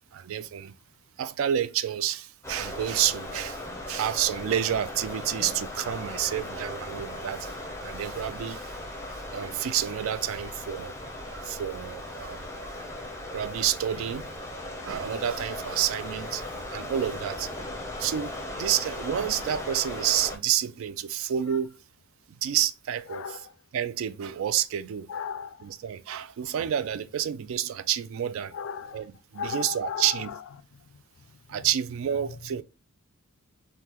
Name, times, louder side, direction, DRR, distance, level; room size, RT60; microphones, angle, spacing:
voice 1, 0.1-0.7 1.2-8.7 9.3-11.0 11.2-12.5 13.3-14.3 14.8-16.4 16.7-17.5 18.0-21.8 22.4-23.4 23.7-25.1 25.6-28.5 28.9-30.3 31.5-32.6, right 10 dB, 65° right, 0.3 m, -29 dB
sound 1, 2.4-20.4, left 1 dB, 15° left, 0.5 m, -38 dB
voice 2, 23.1-23.4 25.1-25.7 28.5-29.0 29.3-30.4, left 6 dB, 65° left, 0.3 m, -35 dB
3.5 x 2.1 x 2.9 m
head